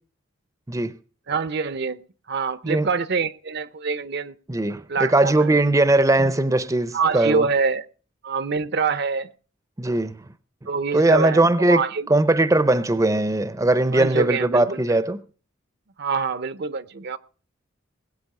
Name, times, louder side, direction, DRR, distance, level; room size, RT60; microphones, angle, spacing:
voice 1, 1.3-2.0 2.3-4.3 4.9-5.6 6.9-7.8 8.2-9.3 10.7-12.1 13.9-15.0 16.0-17.2, right 5 dB, 55° right, 0.6 m, -25 dB
voice 2, 4.5-7.5 9.8-10.2 10.9-11.8 12.1-15.2, right 2 dB, 15° right, 0.6 m, -19 dB
20.5 x 8.3 x 5.4 m
head